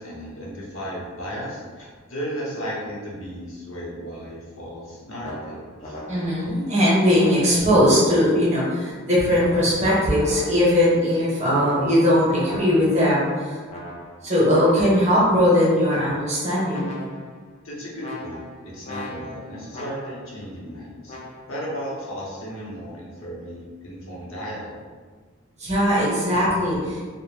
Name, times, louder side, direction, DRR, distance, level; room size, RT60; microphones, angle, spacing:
voice 1, 0.0-6.0 17.6-21.1 21.5-24.8, equal, 75° left, -5 dB, 0.8 m, -35 dB
sound 1, 5.2-6.5 7.2-8.7 9.4-10.9 11.5-13.1 13.7-15.1 15.9-16.4 16.7-17.4 18.0-20.3 21.1-21.4, left 1 dB, 30° left, 0.4 m, -38 dB
voice 2, 6.1-13.6 14.2-16.9 25.6-27.1, equal, 30° right, -7 dB, 0.8 m, -19 dB
2.4 x 2.1 x 3.1 m, 1.5 s
head